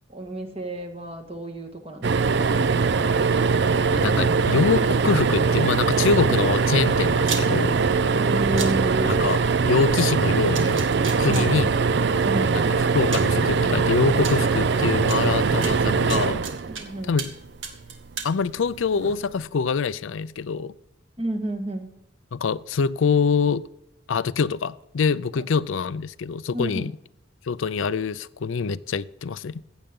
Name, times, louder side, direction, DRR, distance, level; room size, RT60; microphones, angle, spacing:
voice 1, 0.1-2.5 8.1-9.1 11.3-11.5 12.2-12.7 16.7-17.2 21.2-22.0 25.4-25.5 26.5-26.9, right 1 dB, 30° right, 5 dB, 1.6 m, -31 dB
sound 1, 2.0-17.3 19.0-19.2 19.4-19.5, right 5 dB, 55° right, 0.5 m, -21 dB
voice 2, 3.9-7.8 8.5-8.6 9.2-10.8 11.2-11.7 12.5-12.6 12.9-16.4 17.1-17.3 18.2-20.7 22.3-23.7 24.1-26.9 27.5-29.6, left 5 dB, 75° left, 18 dB, 0.4 m, -25 dB
sound 2, 7.3-7.4 8.6-8.7 10.0-10.1 10.5-11.4 12.5-12.6 13.1-13.3 14.2-14.3 15.1-15.2 15.6-16.8 17.2-17.4 17.6-18.3, right 6 dB, 75° right, 2.0 m, -32 dB
15.5 x 9.0 x 3.7 m, 0.87 s
head